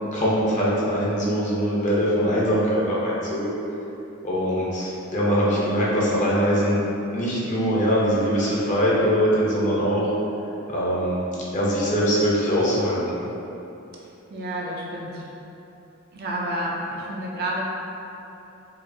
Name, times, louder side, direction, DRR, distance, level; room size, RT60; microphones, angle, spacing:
voice 1, 0.1-3.5 4.2-6.8 7.1-10.1 10.7-11.2 11.5-13.0, equal, 35° left, -7 dB, 0.8 m, -22 dB
voice 2, 14.3-15.3 16.1-17.6, right 1 dB, 45° right, -3 dB, 0.5 m, -30 dB
4.8 x 2.5 x 2.6 m, 3.0 s
head